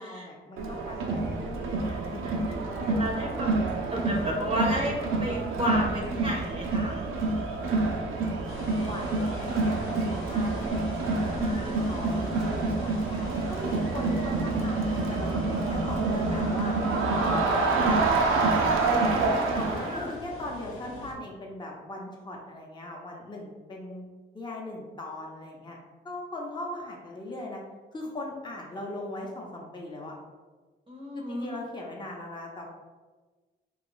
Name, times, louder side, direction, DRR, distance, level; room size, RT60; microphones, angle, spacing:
voice 1, 0.0-2.3 8.8-16.7 17.2-18.0 19.5-24.1 24.3-25.8 26.0-27.6 27.9-30.1 31.1-32.6, left 1 dB, 20° left, -2 dB, 0.7 m, -39 dB
Crowd, 0.6-20.0, right 3 dB, 75° right, 0.5 m, -27 dB
voice 2, 2.2-2.6 2.9-3.5 3.9-7.0 11.3-12.3 18.9-20.1 30.9-31.6, equal, 25° right, -2 dB, 0.7 m, -33 dB
sound 1, 8.5-21.1, left 1 dB, 80° left, 0.6 m, -43 dB
2.9 x 2.4 x 3.8 m, 1.3 s
supercardioid pair, 55°, 21 cm